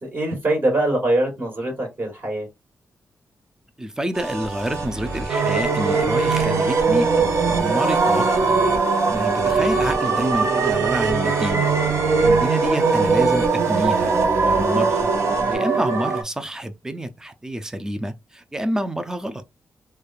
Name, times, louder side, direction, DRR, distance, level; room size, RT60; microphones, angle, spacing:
voice 1, 0.0-2.5, right 1 dB, 40° right, 1.5 m, -23 dB
voice 2, 3.8-8.6 9.1-11.7 12.2-14.1 14.4-15.1 15.5-19.4, right 1 dB, 10° right, 0.4 m, -28 dB
sound 1, 4.1-15.6, right 3 dB, 75° right, 1.3 m, -30 dB
sound 2, 5.3-16.2, right 4 dB, 60° right, 0.7 m, -20 dB
3.2 x 2.2 x 2.5 m
cardioid pair, 95°, 6 cm